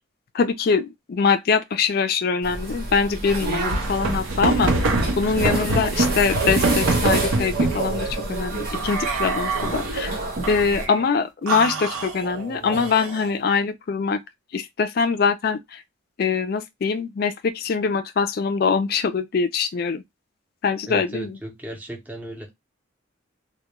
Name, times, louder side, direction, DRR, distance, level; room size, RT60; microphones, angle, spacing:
voice 1, 0.3-4.9 5.2-10.2 10.5-14.2 14.5-15.8 16.2-20.0 20.6-21.4, left 5 dB, 50° left, 0.3 m, -23 dB
sound 1, 2.4-10.9, right 2 dB, 50° right, 0.7 m, -28 dB
sound 2, 3.4-7.9 8.7-10.0 10.4-11.0 11.5-13.3, right 2 dB, 85° right, 0.6 m, -25 dB
voice 2, 20.9-22.5, right 1 dB, 10° right, 0.5 m, -35 dB
2.2 x 2.1 x 2.9 m
head